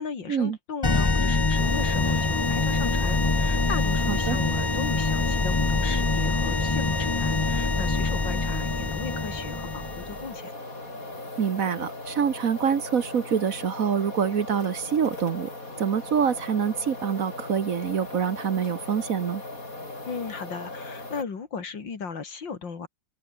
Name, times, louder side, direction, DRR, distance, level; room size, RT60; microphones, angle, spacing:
voice 1, 0.0-10.5 20.1-22.9, left 5 dB, 80° left, 3.3 m, -36 dB
sound 1, 0.8-10.2, left 3 dB, 20° left, 0.6 m, -25 dB
sound 2, 1.5-21.2, left 2 dB, 45° left, 6.9 m, -39 dB
voice 2, 4.1-4.4 11.4-15.5 15.8-19.4, right 7 dB, 50° right, 1.4 m, -26 dB
open air
omnidirectional pair, 2.0 m